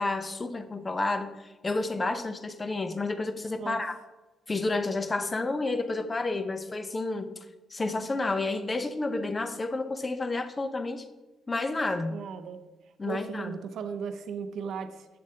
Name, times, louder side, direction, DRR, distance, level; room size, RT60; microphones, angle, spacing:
voice 1, 0.0-3.9 4.5-7.3 7.7-11.1 11.5-12.2 13.0-13.6, left 2 dB, 25° left, 10 dB, 0.6 m, -30 dB
voice 2, 12.1-12.6 13.1-15.1, right 6 dB, 70° right, 9 dB, 0.6 m, -36 dB
7.7 x 7.2 x 2.8 m, 1.1 s
cardioid pair, 90°, 0 cm